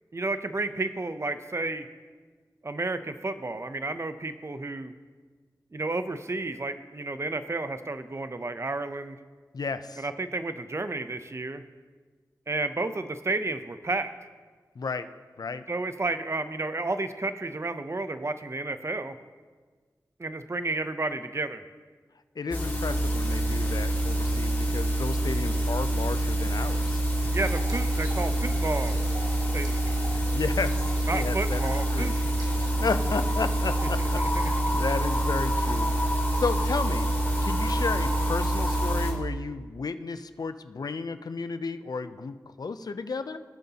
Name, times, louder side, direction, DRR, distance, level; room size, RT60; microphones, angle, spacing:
voice 1, 0.1-1.9 2.6-4.9 5.7-9.2 10.0-11.6 12.5-14.1 15.7-19.2 20.2-21.6 27.3-29.0 29.5-29.9 31.1-32.2 34.0-34.4, right 2 dB, 40° right, 10 dB, 0.6 m, -31 dB
voice 2, 9.5-10.0 14.8-15.1 15.4-15.6 22.4-27.0 30.3-32.2 32.8-37.1 37.4-43.4, left 4 dB, 70° left, 11 dB, 0.5 m, -33 dB
sound 1, 22.5-39.1, right 1 dB, 30° left, 2.3 m, -26 dB
sound 2, 27.3-33.9, right 2 dB, 70° right, 2.1 m, -45 dB
18.5 x 7.7 x 2.9 m, 1.5 s
wide cardioid pair, 60°, 7 cm